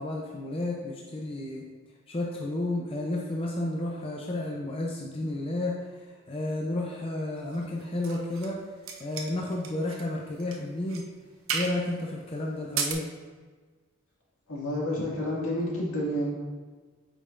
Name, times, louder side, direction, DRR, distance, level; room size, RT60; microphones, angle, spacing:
voice 1, 0.0-1.6 2.1-8.6 9.0-11.0 11.5-13.1, left 1 dB, 25° left, -1 dB, 0.5 m, -32 dB
sound 1, 7.5-8.6 8.8-10.1 10.4-10.6 10.9-11.1 11.5-11.8 12.6-12.9, right 6 dB, 70° right, 0.7 m, -33 dB
voice 2, 14.5-16.3, equal, 80° left, -5 dB, 2.0 m, -29 dB
8.3 x 5.6 x 2.5 m, 1.4 s
head